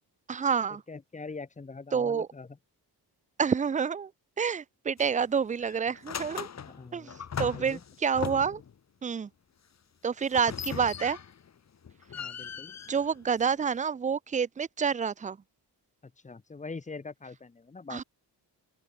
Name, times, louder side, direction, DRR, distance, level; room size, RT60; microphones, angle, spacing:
voice 1, 0.3-0.8 1.9-2.3 3.4-4.1 4.4-6.5 6.9-8.6 9.0-9.3 10.0-11.2 12.9-15.4 17.9-18.0, right 6 dB, 20° right, 0.3 m, -28 dB
voice 2, 0.9-2.6 6.6-7.8 12.1-12.8 16.0-18.0, left 4 dB, 20° left, 1.2 m, -43 dB
sound 1, 5.0-5.3 5.6-8.7 10.3-11.5 11.8-13.8, left 7 dB, 40° left, 1.5 m, -39 dB
open air
wide cardioid pair, 175°, 41 cm